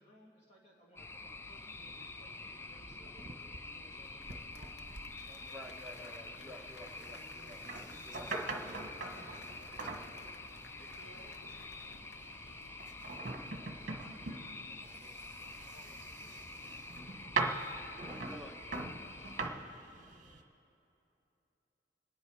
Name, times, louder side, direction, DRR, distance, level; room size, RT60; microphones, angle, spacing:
voice 1, 0.0-7.3 10.0-10.6 11.9-12.0 13.6-16.9 18.6-20.2, equal, 35° left, -3 dB, 2.7 m, -62 dB
sound 1, 1.0-19.4, left 3 dB, 15° left, 0.3 m, -48 dB
sound 2, 1.5-20.4, right 3 dB, 45° right, 1.2 m, -44 dB
Applause / Crowd, 4.0-13.5 13.8-13.9, left 4 dB, 60° left, 0.8 m, -58 dB
voice 2, 5.5-7.6 8.0-9.1 18.1-18.8, equal, ahead, 0 dB, 1.1 m, -52 dB
voice 3, 9.1-10.4 10.8-12.7, equal, 80° left, 0 dB, 2.2 m, -62 dB
25.5 x 10.5 x 4.8 m, 2.8 s
head